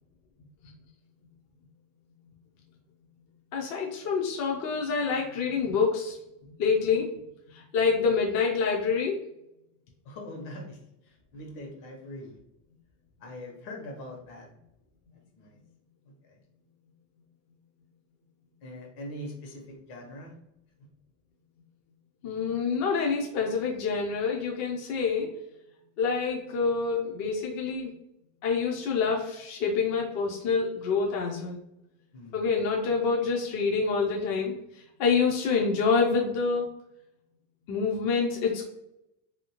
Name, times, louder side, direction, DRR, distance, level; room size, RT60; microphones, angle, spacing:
voice 1, 3.5-6.2 6.6-7.1 7.5-9.2 22.2-25.3 26.0-27.9 28.4-31.6 32.3-36.7 37.7-38.6, left 5 dB, 40° left, -1 dB, 0.4 m, -27 dB
voice 2, 10.0-12.4 13.2-14.5 15.1-15.6 16.2-16.4 18.6-20.4 20.8-20.9 32.1-32.5, left 1 dB, 65° left, 1 dB, 1.1 m, -42 dB
2.8 x 2.7 x 2.8 m, 0.83 s
supercardioid pair, 145°, 47 cm